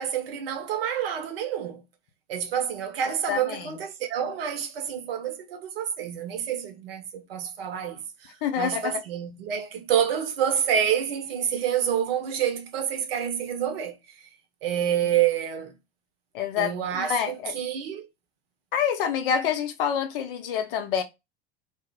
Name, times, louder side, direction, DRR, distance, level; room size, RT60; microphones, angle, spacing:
voice 1, 0.0-1.8 2.3-8.3 8.6-14.3 14.6-15.7 16.6-18.1, right 9 dB, 65° right, 0.7 m, -28 dB
voice 2, 3.3-3.7 8.4-9.0 16.3-17.5 18.7-21.0, left 8 dB, 55° left, 0.6 m, -27 dB
2.0 x 2.0 x 3.7 m
figure-of-eight pair, 80°, 32 cm